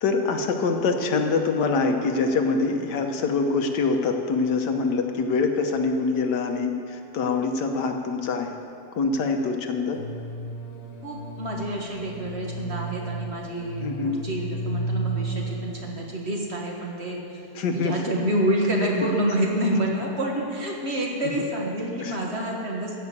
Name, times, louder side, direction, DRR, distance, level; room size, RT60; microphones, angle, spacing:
voice 1, 0.0-8.6 8.9-10.0 13.8-14.2 17.5-17.9 19.0-19.1 21.4-21.5 22.0-22.2, left 4 dB, 80° left, 4 dB, 1.6 m, -24 dB
sound 1, 9.9-15.9, right 2 dB, 65° left, 1.8 m, -33 dB
voice 2, 11.0-17.4 17.7-23.0, right 1 dB, 40° right, -1 dB, 1.6 m, -28 dB
13.0 x 5.8 x 8.5 m, 2.7 s
omnidirectional pair, 1.8 m